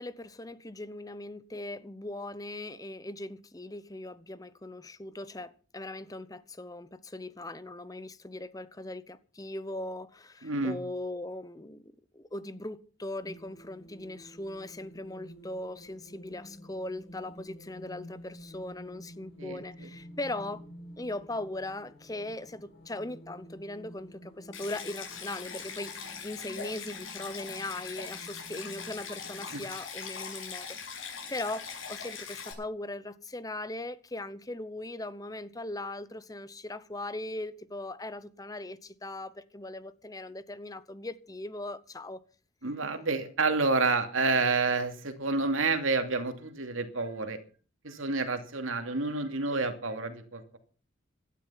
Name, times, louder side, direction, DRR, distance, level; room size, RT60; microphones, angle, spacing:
voice 1, 0.0-20.6 21.0-42.2, left 2 dB, 20° left, 0.8 m, -39 dB
voice 2, 10.4-10.8 19.4-19.9 42.6-47.4 47.8-50.6, right 3 dB, 90° right, 2.7 m, -29 dB
sound 1, 13.2-29.6, equal, 70° left, 7.0 m, -51 dB
Stream, 24.5-32.5, left 6 dB, 85° left, 7.0 m, -41 dB
17.0 x 12.5 x 5.8 m
head